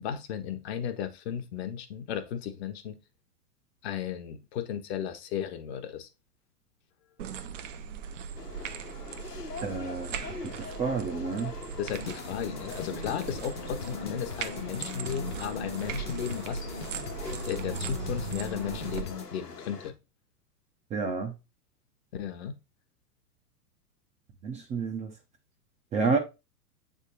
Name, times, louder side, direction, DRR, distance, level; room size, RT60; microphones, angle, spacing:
voice 1, 0.0-3.0 3.8-6.1 11.8-16.6 17.4-19.9 22.1-22.6, left 8 dB, 45° left, 1.0 m, -35 dB
sound 1, 7.2-19.0, right 7 dB, 50° right, 0.8 m, -39 dB
sound 2, 8.3-19.9, left 4 dB, 85° left, 1.2 m, -43 dB
voice 2, 9.6-11.6 20.9-21.4 24.4-25.1 25.9-26.2, right 4 dB, 15° right, 0.7 m, -30 dB
sound 3, 11.9-19.3, left 6 dB, 20° left, 0.3 m, -41 dB
8.1 x 3.7 x 4.0 m
figure-of-eight pair, 105°, 46 cm